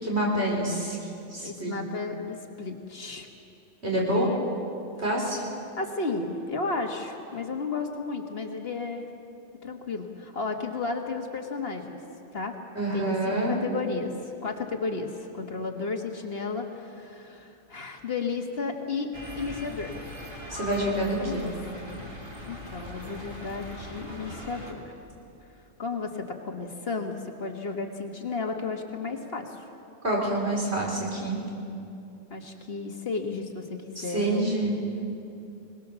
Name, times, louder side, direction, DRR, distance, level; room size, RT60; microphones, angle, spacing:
voice 1, 0.0-1.0 1.3-1.7 3.8-4.3 5.0-5.4 12.7-13.6 20.5-21.5 30.0-31.4 34.0-34.8, right 1 dB, 65° right, -2 dB, 4.8 m, -27 dB
voice 2, 1.4-3.3 3.9-4.4 5.8-9.1 9.6-12.0 12.3-12.6 12.9-19.1 19.4-19.9 21.2-21.5 22.4-24.9 25.8-29.6 32.3-34.5, left 4 dB, 55° left, 3 dB, 1.8 m, -33 dB
sound 1, 19.1-24.7, left 1 dB, 20° right, 2.6 m, -40 dB
21.5 x 20.0 x 7.0 m, 2.7 s
omnidirectional pair, 1.2 m